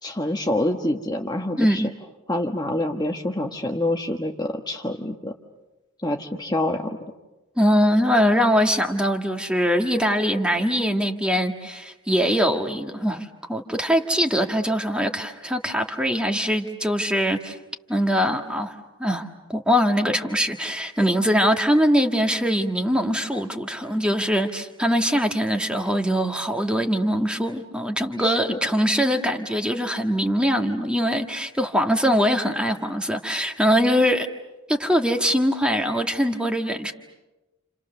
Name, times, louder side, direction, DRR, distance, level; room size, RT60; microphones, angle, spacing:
voice 1, 0.0-1.8 2.3-5.3 6.0-7.0 28.2-28.6, left 1 dB, 20° left, 2 dB, 1.2 m, -26 dB
voice 2, 1.6-1.9 7.6-17.6 17.9-34.3 34.7-36.9, equal, 5° right, 4 dB, 1.6 m, -22 dB
30.0 x 29.0 x 6.8 m, 1.1 s
head